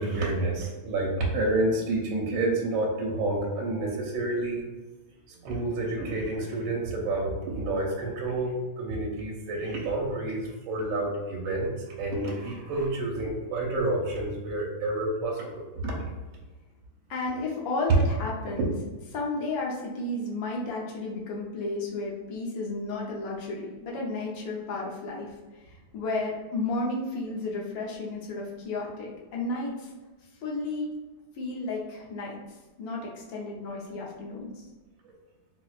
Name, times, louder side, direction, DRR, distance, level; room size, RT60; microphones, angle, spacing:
voice 1, 0.0-4.6 5.3-16.1 35.0-35.1, right 2 dB, 80° right, -2 dB, 1.4 m, -29 dB
voice 2, 17.1-18.7 19.1-25.3 25.6-29.9 30.4-30.9 31.3-34.7, left 2 dB, 75° left, -3 dB, 1.3 m, -33 dB
4.3 x 2.1 x 2.3 m, 1.2 s
omnidirectional pair, 2.2 m